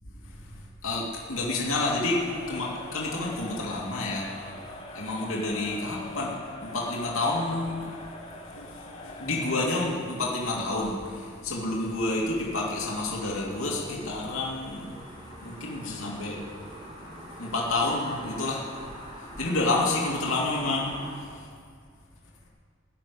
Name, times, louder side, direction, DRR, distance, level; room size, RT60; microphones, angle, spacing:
voice 1, 0.8-4.3 4.9-7.9 8.3-15.0 15.4-16.4 17.2-18.7 19.4-21.5, left 2 dB, 90° left, -3 dB, 2.6 m, -29 dB
Crowd, 1.8-9.9, left 2 dB, 30° left, 1.9 m, -43 dB
sound 1, 11.5-21.1, equal, 30° right, 3.5 m, -45 dB
17.0 x 6.5 x 10.0 m, 2.2 s
head